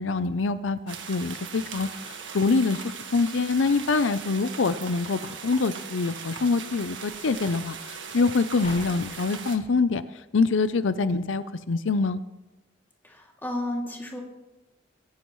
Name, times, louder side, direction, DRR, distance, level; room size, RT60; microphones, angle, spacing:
voice 1, 0.0-12.2, left 4 dB, 80° left, 13 dB, 0.6 m, -25 dB
sound 1, 0.9-9.6, right 6 dB, 75° right, 1.7 m, -39 dB
sound 2, 1.5-11.2, left 1 dB, 35° left, 6.5 m, -50 dB
voice 2, 13.0-14.2, left 1 dB, 10° left, -1 dB, 2.6 m, -32 dB
23.0 x 15.5 x 3.1 m, 1.0 s
head